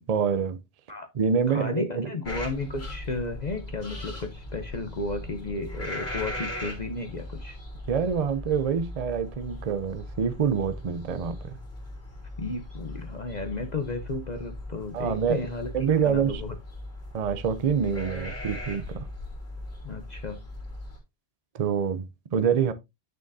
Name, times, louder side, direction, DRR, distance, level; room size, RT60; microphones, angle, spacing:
voice 1, 0.1-0.6 1.1-2.1 7.9-11.4 14.9-15.4 15.7-16.4 17.1-19.1 21.5-22.7, right 7 dB, 40° right, 0.6 m, -26 dB
voice 2, 1.5-7.6 12.4-15.7 16.0-16.5 19.8-20.4, left 3 dB, 45° left, 0.8 m, -33 dB
sound 1, 2.2-21.0, left 1 dB, 70° left, 3.1 m, -39 dB
9.0 x 6.5 x 2.7 m
omnidirectional pair, 1.1 m